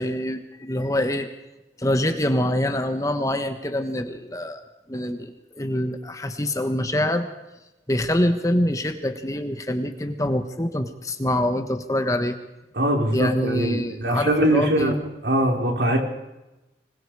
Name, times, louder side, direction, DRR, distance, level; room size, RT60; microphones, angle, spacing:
voice 1, 0.0-1.3 1.8-4.6 4.9-7.3 7.9-12.4 13.1-14.9, left 1 dB, 20° left, 8 dB, 1.3 m, -25 dB
voice 2, 12.7-14.9 15.2-16.0, right 1 dB, 80° right, 1 dB, 4.5 m, -22 dB
25.5 x 21.0 x 4.9 m, 0.99 s
head